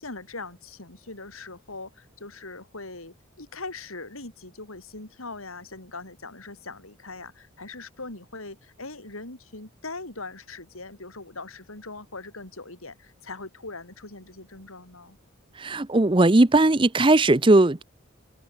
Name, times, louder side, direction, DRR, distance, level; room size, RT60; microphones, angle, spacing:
voice 1, 0.0-15.2, left 3 dB, 90° left, 5.2 m, -41 dB
voice 2, 15.6-17.8, right 2 dB, 25° right, 0.6 m, -18 dB
open air
head